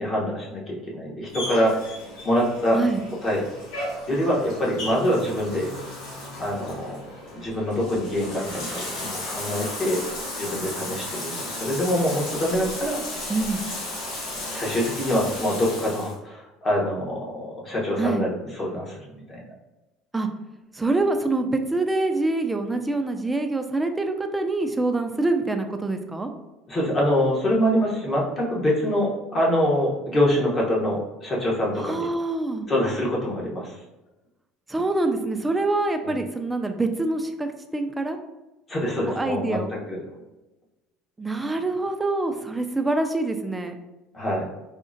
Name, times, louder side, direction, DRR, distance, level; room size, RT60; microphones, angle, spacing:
voice 1, 0.0-1.8 2.2-2.8 3.2-3.5 4.1-5.7 6.4-6.9 7.3-10.0 10.4-13.0 14.5-19.4 26.7-32.1 32.7-33.7 36.0-36.1 38.7-39.6 39.9-40.0 44.1-44.4, equal, 30° left, -3 dB, 0.9 m, -25 dB
Bathtub (filling or washing), 1.3-16.1, left 1 dB, 75° left, 1.1 m, -34 dB
voice 2, 13.3-13.6 18.0-18.3 20.1-20.3 20.7-26.3 31.8-32.7 34.7-38.2 39.1-39.7 41.2-43.7, right 2 dB, 10° right, 6 dB, 0.3 m, -25 dB
3.6 x 2.1 x 2.5 m, 1.0 s
supercardioid pair, 120°, 0 cm